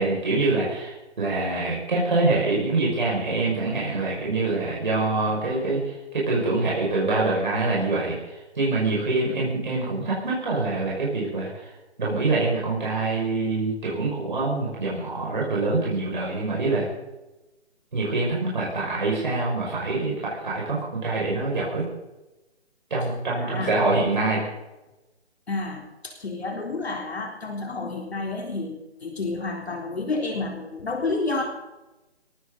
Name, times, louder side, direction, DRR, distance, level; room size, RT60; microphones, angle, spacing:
voice 1, 0.0-11.7 12.0-16.9 17.9-21.9 22.9-24.4, right 3 dB, 45° right, -5 dB, 6.2 m, -25 dB
voice 2, 23.3-23.7 25.5-31.4, left 3 dB, 65° left, 1 dB, 3.9 m, -30 dB
18.5 x 18.5 x 4.1 m, 1.0 s
hypercardioid pair, 175°, 33 cm